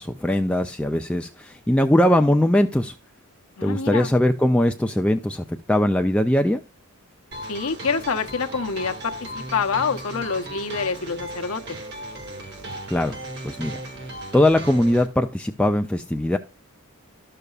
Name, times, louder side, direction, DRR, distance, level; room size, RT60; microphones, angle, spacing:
voice 1, 0.0-2.9 3.6-6.6 12.9-13.2 13.4-13.8 14.3-16.4, left 1 dB, 5° left, 0.3 m, -20 dB
voice 2, 3.6-4.1 7.5-11.8, left 5 dB, 65° left, 0.8 m, -27 dB
sound 1, 7.3-15.1, right 1 dB, 50° right, 1.5 m, -36 dB
12.0 x 6.7 x 2.4 m
head